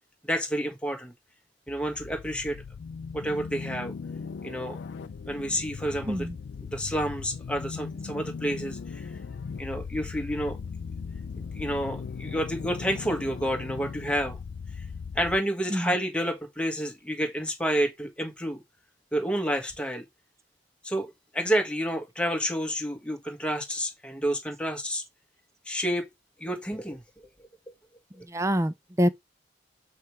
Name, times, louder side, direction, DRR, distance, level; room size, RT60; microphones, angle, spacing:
voice 1, 0.2-1.1 1.7-2.6 3.1-3.9 4.4-4.8 5.3-6.3 6.6-9.1 9.6-10.6 11.4-14.4 15.1-18.6 19.1-20.0 20.8-25.0 25.6-26.1 26.4-27.3 28.2-28.3, equal, 5° left, 1.4 m, -29 dB
sound 1, 1.7-15.4, left 5 dB, 70° left, 0.4 m, -38 dB
voice 2, 28.3-29.1, equal, 15° right, 0.5 m, -26 dB
7.8 x 3.1 x 4.7 m
head